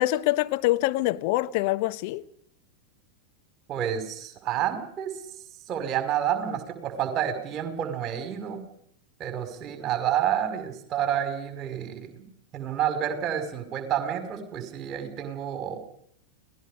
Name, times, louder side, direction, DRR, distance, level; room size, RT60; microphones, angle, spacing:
voice 1, 0.0-2.2, left 17 dB, 45° left, 1.1 m, -25 dB
voice 2, 3.7-5.1 5.7-8.6 9.2-15.8, right 9 dB, 30° right, 5.4 m, -29 dB
30.0 x 19.5 x 5.2 m
figure-of-eight pair, 90°, 0 cm